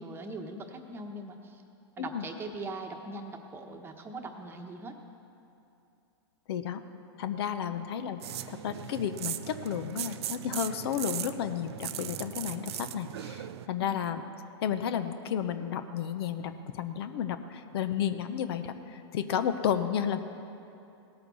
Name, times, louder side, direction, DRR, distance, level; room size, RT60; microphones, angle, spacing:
voice 1, 0.0-1.6 2.0-4.9 7.7-7.8 13.8-14.1, right 2 dB, 15° right, 3 dB, 1.1 m, -41 dB
voice 2, 6.5-6.8 7.2-8.2 8.5-14.2 14.6-20.2, left 8 dB, 65° left, 10 dB, 0.8 m, -32 dB
sound 1, 8.2-13.7, right 11 dB, 75° right, 0.6 m, -38 dB
18.0 x 13.5 x 4.1 m, 2.7 s
hypercardioid pair, 135°, 14 cm